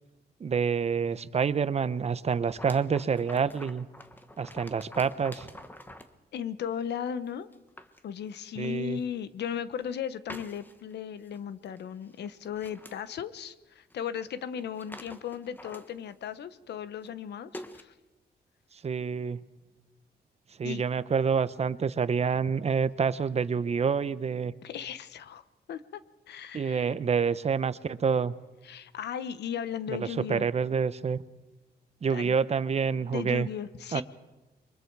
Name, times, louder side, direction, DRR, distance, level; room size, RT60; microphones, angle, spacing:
voice 1, 0.4-3.9 4.4-5.5 8.6-9.0 18.8-19.4 20.6-24.5 26.5-28.4 29.9-31.2 32.0-33.5 33.9-34.0, right 6 dB, 40° right, 15 dB, 0.8 m, -27 dB
sound 1, 2.5-6.2 7.0-7.1 7.5-8.0 8.6-8.7 9.5-9.9 10.3-10.9 11.3-11.4 11.7-11.8 12.1-13.0 13.9-14.0 14.3-14.4 14.6-16.2 17.0-17.1 17.5-17.8, left 1 dB, 10° left, 1.2 m, -47 dB
voice 2, 6.3-7.5 8.0-17.9 20.6-20.8 24.6-25.4 25.7-26.0 26.3-26.9 28.6-30.5 32.1-32.3 33.1-34.0, left 8 dB, 85° left, 13 dB, 1.0 m, -36 dB
29.5 x 23.5 x 4.7 m, 1.1 s
cardioid pair, 125°, 17 cm